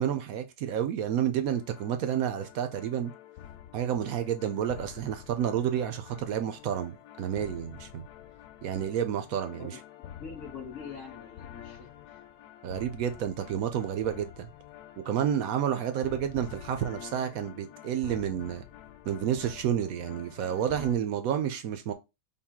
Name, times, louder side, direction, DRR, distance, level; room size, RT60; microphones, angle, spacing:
voice 1, 0.0-3.1 3.7-8.1 8.6-9.7 12.6-14.5 15.0-18.6 19.1-21.9, right 9 dB, 70° right, 0.9 m, -30 dB
sound 1, 1.5-21.0, left 10 dB, 70° left, 1.0 m, -48 dB
voice 2, 9.4-9.8 10.2-12.2, left 5 dB, 50° left, 1.3 m, -44 dB
5.6 x 2.3 x 3.6 m
omnidirectional pair, 2.0 m